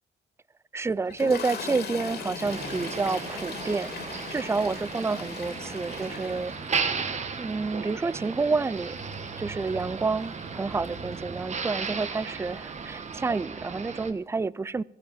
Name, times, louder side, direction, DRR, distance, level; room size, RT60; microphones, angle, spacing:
voice 1, 0.7-6.5 7.4-9.0 9.4-14.8, right 4 dB, 15° right, 22 dB, 0.4 m, -29 dB
Toilet flush, 1.1-11.4 12.3-12.5 12.8-13.0, left 5 dB, 65° left, 2.9 m, -41 dB
Motor vehicle (road), 2.4-14.1, right 5 dB, 40° right, 1.3 m, -35 dB
15.5 x 10.0 x 5.6 m, 0.95 s
cardioid pair, 85°, 18 cm